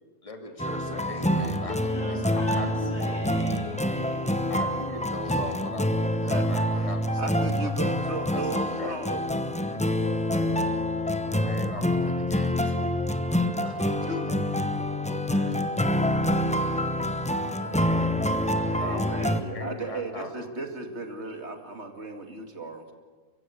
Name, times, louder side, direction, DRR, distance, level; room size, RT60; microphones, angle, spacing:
voice 1, 0.2-3.2 4.5-7.7 8.3-9.0 11.3-12.9 18.7-20.3, left 2 dB, 25° left, 4 dB, 2.4 m, -39 dB
sound 1, 0.6-19.4, left 1 dB, 5° left, 0.8 m, -26 dB
voice 2, 1.9-5.1, equal, 15° right, -3 dB, 6.1 m, -40 dB
voice 3, 7.2-9.2 13.3-14.4 15.1-15.6 17.6-18.1 18.6-22.9, right 3 dB, 50° right, 5 dB, 2.6 m, -36 dB
29.0 x 16.0 x 8.5 m, 1.5 s
omnidirectional pair, 1.5 m